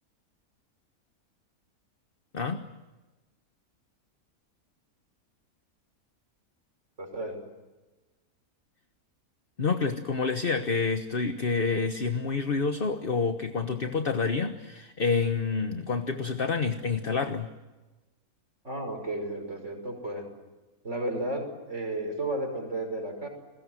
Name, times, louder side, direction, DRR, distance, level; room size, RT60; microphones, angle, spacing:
voice 1, 2.3-2.6 9.6-17.5, left 4 dB, 40° left, 8 dB, 1.4 m, -28 dB
voice 2, 7.0-7.4 18.6-20.2 20.8-23.3, right 1 dB, 50° right, 4 dB, 6.0 m, -33 dB
30.0 x 21.0 x 7.8 m, 1.2 s
omnidirectional pair, 1.6 m